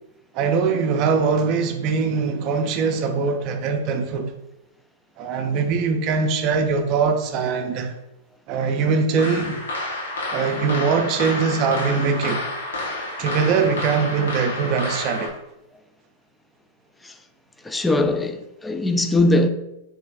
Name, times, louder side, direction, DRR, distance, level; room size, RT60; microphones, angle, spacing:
voice 1, 0.3-4.3 5.2-7.9 8.5-9.6 10.3-12.5 13.2-15.3, right 5 dB, 45° right, 0.5 m, -22 dB
sound 1, 9.2-15.3, left 2 dB, 75° left, 0.8 m, -30 dB
voice 2, 17.6-19.5, left 2 dB, 10° left, 0.4 m, -20 dB
3.3 x 3.1 x 3.3 m
figure-of-eight pair, 100°, 0 cm